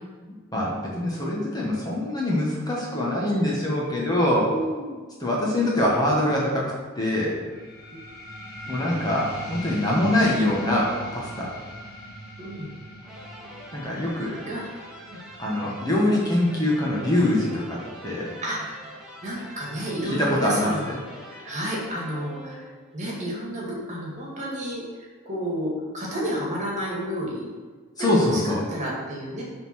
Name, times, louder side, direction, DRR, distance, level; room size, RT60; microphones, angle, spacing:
voice 1, 0.2-4.5 5.2-7.3 8.7-11.5 13.7-14.4 15.4-18.3 20.0-21.0 28.0-28.6, left 1 dB, 20° left, -4 dB, 1.2 m, -24 dB
voice 2, 4.4-5.0 12.4-12.7 14.5-14.6 15.1-15.2 18.4-18.9 19.2-20.9 21.3-22.7 22.9-27.5 28.0-29.4, equal, 35° right, -4 dB, 1.9 m, -31 dB
sound 1, 7.5-18.6, equal, 50° left, 1.8 m, -41 dB
sound 2, 13.0-23.0, equal, 5° right, 1.2 m, -44 dB
6.9 x 3.8 x 6.0 m, 1.5 s
head